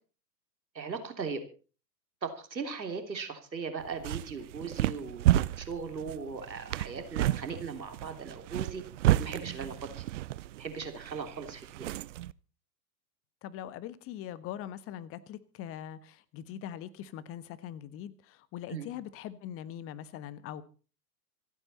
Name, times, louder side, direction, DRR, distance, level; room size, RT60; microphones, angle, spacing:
voice 1, 0.7-1.4 2.2-8.8 9.2-10.1 10.6-11.9 18.7-18.9, right 5 dB, 90° right, 3.3 m, -38 dB
sound 1, 3.8-12.3, right 15 dB, 50° right, 0.6 m, -31 dB
voice 2, 13.4-20.6, left 11 dB, 25° left, 1.3 m, -42 dB
26.5 x 9.1 x 4.2 m
hypercardioid pair, 115°, 50 cm